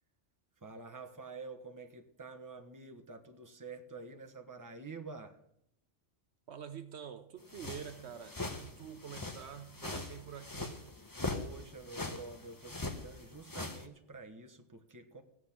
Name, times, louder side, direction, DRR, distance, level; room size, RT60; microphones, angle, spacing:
voice 1, 0.6-5.4 11.3-15.2, right 4 dB, 15° right, 1.1 m, -48 dB
voice 2, 6.5-10.9, right 8 dB, 65° right, 1.0 m, -47 dB
sound 1, 7.5-13.9, left 2 dB, 20° left, 1.1 m, -42 dB
15.5 x 6.1 x 8.6 m
omnidirectional pair, 1.2 m